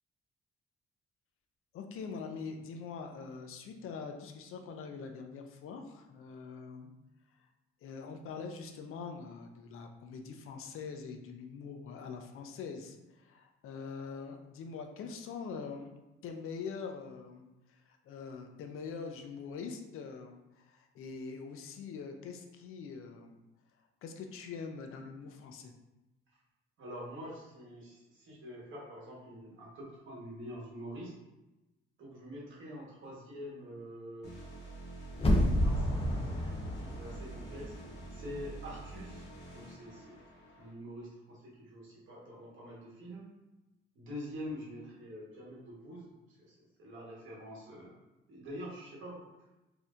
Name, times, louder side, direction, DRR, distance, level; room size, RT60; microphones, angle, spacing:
voice 1, 1.7-6.9 7.8-15.9 16.2-23.4 24.0-25.7, left 5 dB, 85° left, 5 dB, 0.5 m, -44 dB
voice 2, 26.8-31.1 32.0-34.3 35.5-36.5 37.0-37.7 38.1-40.2 40.5-43.3 43.9-47.9 48.3-49.3, equal, 65° right, -5 dB, 1.2 m, -46 dB
sound 1, 34.2-40.7, right 2 dB, 50° left, 1.0 m, -47 dB
sound 2, 35.1-38.1 38.4-38.5, equal, 25° left, 0.5 m, -30 dB
4.2 x 2.6 x 2.4 m, 1.0 s
cardioid pair, 170°, 21 cm